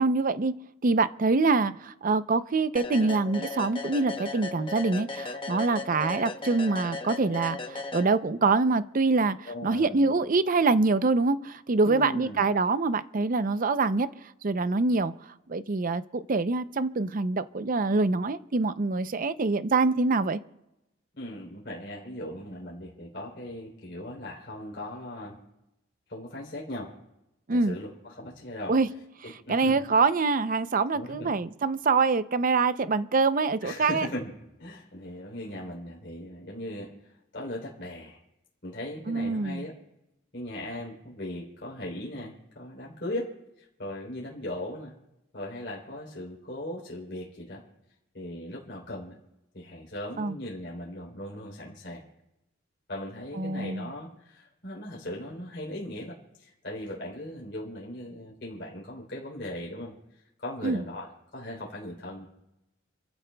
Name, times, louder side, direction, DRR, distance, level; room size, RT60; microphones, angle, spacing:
voice 1, 0.0-9.4 9.6-14.1 14.4-15.1 15.5-20.4 27.5-27.8 28.7-28.9 29.5-34.1 39.1-39.6 50.2-50.3 53.4-53.9 60.6-60.8, right 3 dB, 45° right, 13 dB, 0.5 m, -25 dB
sound 1, 2.8-8.6, left 3 dB, 25° left, 0.9 m, -37 dB
voice 2, 9.4-10.1 11.8-12.4 21.1-25.4 26.1-26.9 27.5-28.8 29.3-29.8 30.9-31.3 33.6-34.3 34.6-38.2 38.6-39.8 40.3-44.9 45.3-47.6 48.1-49.2 49.5-52.0 52.9-62.3, left 1 dB, 55° left, -3 dB, 3.4 m, -38 dB
29.0 x 15.0 x 2.3 m, 0.93 s
head